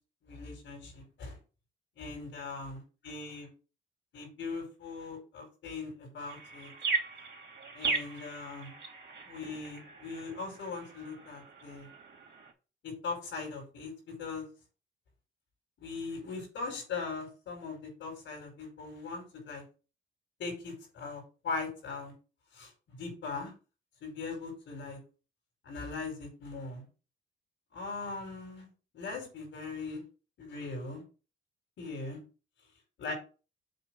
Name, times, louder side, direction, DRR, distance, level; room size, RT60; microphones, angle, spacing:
voice 1, 0.2-1.4 2.0-3.5 4.1-6.7 7.7-8.7 9.3-11.9 12.8-14.5 15.8-19.6 20.4-22.1 22.5-23.5 24.0-25.0 25.6-26.9 27.7-28.7 28.9-30.0 30.4-31.0 31.8-32.2 33.0-33.1, left 4 dB, 70° left, 2 dB, 4.8 m, -40 dB
sound 1, 6.3-12.5, right 4 dB, 60° right, 2.8 m, -38 dB
7.8 x 3.5 x 6.1 m, 0.34 s
cardioid pair, 90°, 20 cm